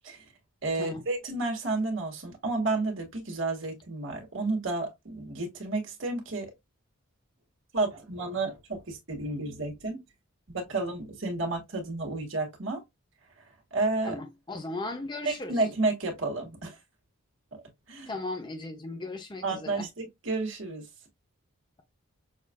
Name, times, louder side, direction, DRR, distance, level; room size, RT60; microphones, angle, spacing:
voice 1, 0.6-6.5 7.7-10.0 10.5-12.8 13.4-14.1 15.2-16.8 17.5-18.1 19.4-20.9, right 3 dB, 60° right, 1.7 m, -31 dB
voice 2, 14.1-15.6 18.1-19.9, left 2 dB, 20° left, 0.5 m, -37 dB
6.4 x 2.4 x 2.2 m
head